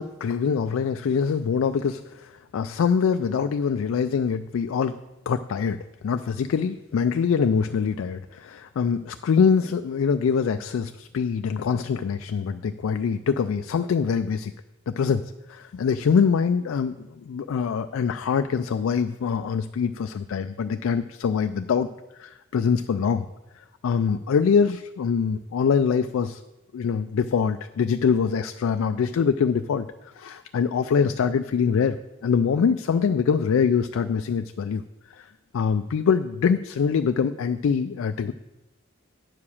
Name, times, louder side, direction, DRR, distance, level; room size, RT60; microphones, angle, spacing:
voice 1, 0.0-4.9 5.3-14.5 14.9-21.9 22.2-23.3 23.8-26.4 26.7-29.9 30.2-32.0 32.2-34.8 35.1-35.2 35.5-38.3, left 6 dB, 85° left, 9 dB, 0.3 m, -24 dB
9.6 x 4.8 x 7.0 m, 1.0 s
head